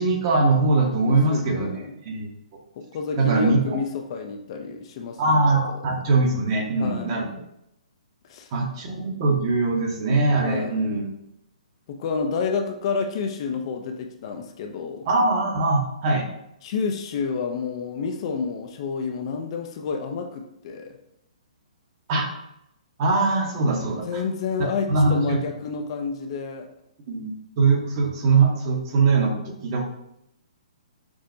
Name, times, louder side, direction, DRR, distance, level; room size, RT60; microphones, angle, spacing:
voice 1, 0.0-1.7 2.0-2.3 3.2-3.8 5.2-7.3 8.5-11.0 15.1-16.3 22.1-22.2 23.0-24.2 24.9-25.4 27.1-29.8, right 3 dB, 40° right, 1 dB, 0.8 m, -22 dB
voice 2, 1.0-1.9 2.8-5.8 6.8-7.2 8.3-8.5 10.4-11.0 11.9-15.1 16.6-21.0 23.9-26.7, left 5 dB, 45° left, 4 dB, 0.4 m, -29 dB
6.0 x 2.1 x 2.6 m, 0.80 s
hypercardioid pair, 135°, 4 cm